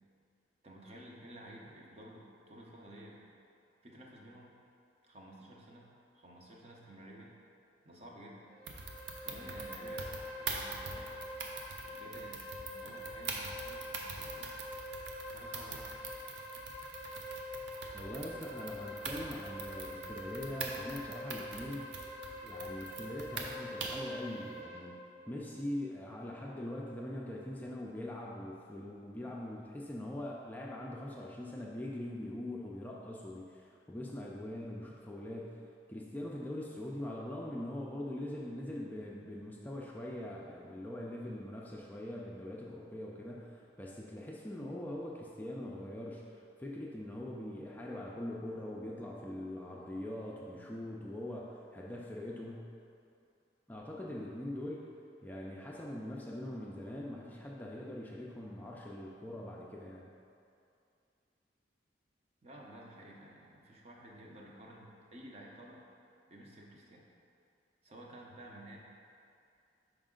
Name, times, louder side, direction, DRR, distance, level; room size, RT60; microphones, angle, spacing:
voice 1, 0.6-3.2 3.8-4.5 5.0-5.9 6.1-7.3 7.8-8.4 9.2-11.2 11.8-14.5 15.3-15.9 62.4-65.9 66.3-67.1 67.8-68.8, right 1 dB, 35° right, -2 dB, 0.7 m, -52 dB
sound 1, 8.5-24.8, left 1 dB, 55° right, 1.2 m, -45 dB
sound 2, 8.7-24.1, right 4 dB, 80° right, 0.6 m, -44 dB
voice 2, 17.9-21.9 22.4-25.0 25.3-35.6 35.9-52.7 53.7-54.9 55.2-60.1, left 1 dB, 10° left, -4 dB, 0.4 m, -42 dB
5.2 x 4.9 x 3.7 m, 2.5 s
head